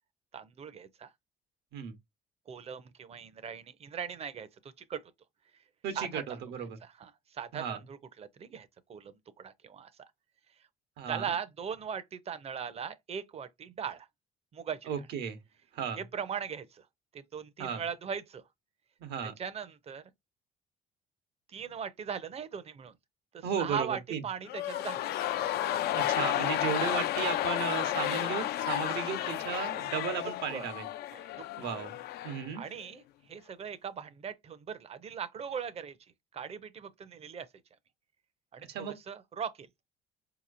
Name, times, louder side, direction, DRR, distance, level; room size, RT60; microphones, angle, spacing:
voice 1, 0.3-1.1 2.5-4.5 4.9-5.0 6.0-6.4 6.8-9.9 11.1-14.1 14.5-14.9 16.0-16.8 17.1-18.4 19.2-20.0 21.5-22.9 23.3-25.1 27.1-27.4 30.5-30.7 31.1-31.5 32.6-33.0 33.3-36.0 36.3-37.5 38.5-39.7, right 7 dB, 40° right, 0.6 m, -39 dB
voice 2, 5.8-6.8 7.5-7.8 11.0-11.3 14.9-15.4 15.7-16.0 17.6-17.8 19.0-19.3 23.4-24.2 25.9-30.9 31.6-32.0 32.2-32.6 38.7-38.9, right 7 dB, 80° right, 1.0 m, -35 dB
sound 1, 24.4-32.5 32.8-32.9, left 13 dB, 70° left, 0.4 m, -32 dB
4.7 x 2.9 x 2.5 m
cardioid pair, 110°, 17 cm